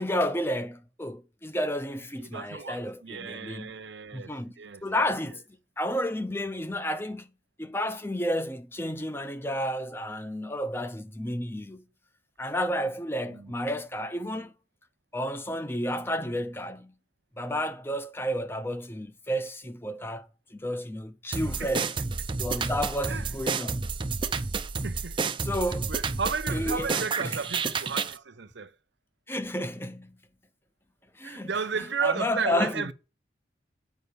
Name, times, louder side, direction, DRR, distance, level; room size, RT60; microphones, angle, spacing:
voice 1, 0.0-3.7 4.1-4.5 4.8-5.4 5.8-7.3 7.6-11.8 12.4-14.5 15.1-16.9 17.4-21.9 22.4-23.8 25.4-25.9 26.5-27.4 29.3-30.2 31.2-31.5 32.0-32.9, equal, 10° left, 0.7 m, -31 dB
voice 2, 2.2-5.1 13.3-13.5 21.3-21.9 23.1-23.3 24.8-25.2 25.9-28.7 31.2-32.9, right 5 dB, 70° right, 0.7 m, -34 dB
sound 1, 21.3-28.2, right 4 dB, 25° right, 0.5 m, -30 dB
8.2 x 5.5 x 6.9 m
head